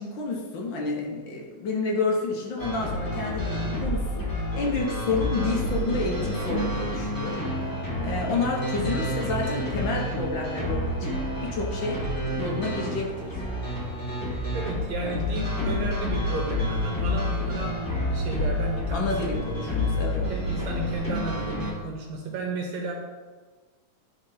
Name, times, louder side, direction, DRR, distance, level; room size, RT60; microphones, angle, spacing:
voice 1, 0.0-7.7 8.0-11.1 11.4-12.0 12.4-13.4 15.0-15.2 18.9-20.3, left 3 dB, 75° left, -1 dB, 1.0 m, -30 dB
sound 1, 2.6-21.7, left 1 dB, 25° left, 0.4 m, -29 dB
voice 2, 14.5-19.1 19.7-19.8 20.3-22.9, right 3 dB, 65° right, 1 dB, 2.0 m, -33 dB
10.5 x 4.3 x 4.2 m, 1.4 s
omnidirectional pair, 3.7 m